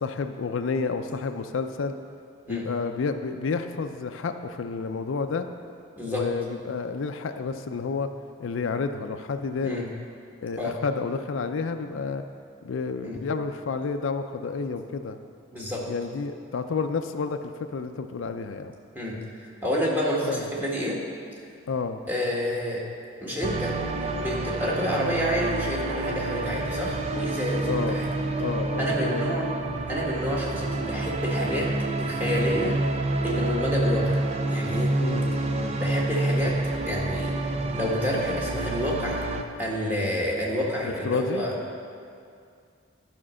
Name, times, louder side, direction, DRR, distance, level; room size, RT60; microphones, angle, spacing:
voice 1, 0.0-2.0 2.5-5.5 6.1-8.1 8.4-9.9 10.4-12.2 12.6-15.2 15.9-18.7 20.2-20.5 21.7-22.0 27.7-28.0 28.4-29.3 32.6-32.8 35.0-35.8 40.8-41.5, left 4 dB, 70° left, 7 dB, 0.4 m, -30 dB
voice 2, 15.5-15.8 18.9-19.2 19.6-21.0 22.1-22.8 23.2-23.7 24.1-28.1 28.8-29.5 29.9-31.7 32.0-32.8 33.2-34.9 35.7-36.6 36.9-37.3 37.7-39.2 39.6-41.5, equal, 10° right, -4 dB, 1.4 m, -29 dB
sound 1, 23.4-39.4, right 2 dB, 30° right, 0.4 m, -28 dB
11.0 x 5.1 x 6.3 m, 2.3 s
head